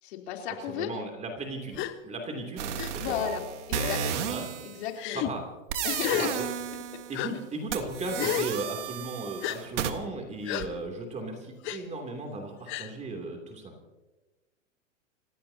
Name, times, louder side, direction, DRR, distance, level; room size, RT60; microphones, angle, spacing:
voice 1, 0.0-0.9 3.0-3.4 3.7-4.4 4.6-5.3 5.8-6.3, left 9 dB, 55° left, 1 dB, 3.7 m, -34 dB
voice 2, 0.7-3.3 4.3-4.5 5.1-5.5 6.2-6.4 7.1-13.7, right 2 dB, 20° right, 3 dB, 3.0 m, -36 dB
Gasp, 1.7-1.9 2.8-2.9 3.7-4.1 5.0-5.3 6.0-6.3 7.1-7.3 8.2-8.5 9.4-9.6 10.5-10.7 11.6-11.8 12.7-12.9, left 13 dB, 30° left, 1.2 m, -31 dB
sound 1, 2.6-4.9 5.7-7.2 7.7-9.9, right 9 dB, 65° right, 1.7 m, -33 dB
29.5 x 16.0 x 2.9 m, 1.1 s
hypercardioid pair, 120°, 39 cm